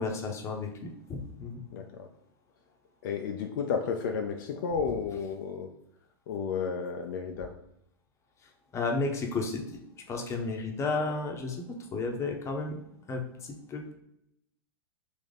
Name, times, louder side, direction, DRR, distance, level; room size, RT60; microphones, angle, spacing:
voice 1, 0.0-1.6 8.7-9.8 10.1-12.8 13.1-13.9, left 3 dB, 25° left, 2 dB, 0.8 m, -33 dB
voice 2, 1.7-2.1 3.0-5.7 6.3-7.5, left 6 dB, 55° left, 3 dB, 0.4 m, -32 dB
3.5 x 2.9 x 3.9 m, 0.78 s
figure-of-eight pair, 95°, 12 cm